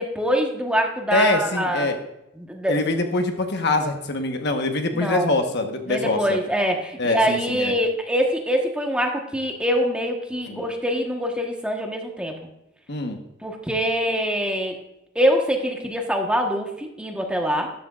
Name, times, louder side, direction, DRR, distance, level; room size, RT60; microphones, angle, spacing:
voice 1, 0.0-1.9 2.4-2.9 4.9-5.3 5.9-12.3 13.4-14.7 15.1-17.7, equal, 5° right, 2 dB, 1.2 m, -24 dB
voice 2, 1.1-2.0 2.7-6.4 7.0-7.7 10.4-10.6 12.9-13.2, left 2 dB, 60° left, 5 dB, 1.1 m, -24 dB
13.0 x 11.5 x 2.4 m, 0.86 s
head